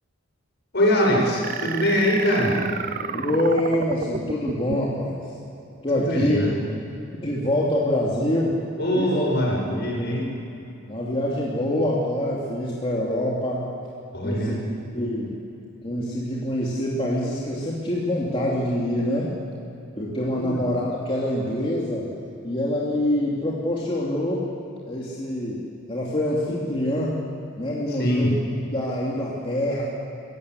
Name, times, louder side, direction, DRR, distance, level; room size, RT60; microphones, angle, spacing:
voice 1, 0.7-2.6 5.9-6.6 8.8-10.3 14.1-14.6 20.3-20.6 27.9-28.3, equal, 55° left, -2 dB, 7.3 m, -23 dB
sound 1, 1.4-5.0, right 6 dB, 45° right, 0.6 m, -32 dB
voice 2, 3.1-5.2 5.8-6.4 7.2-8.6 9.0-9.2 10.9-13.7 14.2-14.6 14.9-15.3 15.8-19.3 20.0-22.1 22.4-24.4 24.9-25.6 25.9-27.2 27.6-28.4 28.7-29.8, left 1 dB, 30° left, -5 dB, 2.8 m, -25 dB
27.0 x 16.5 x 8.3 m, 2.8 s
head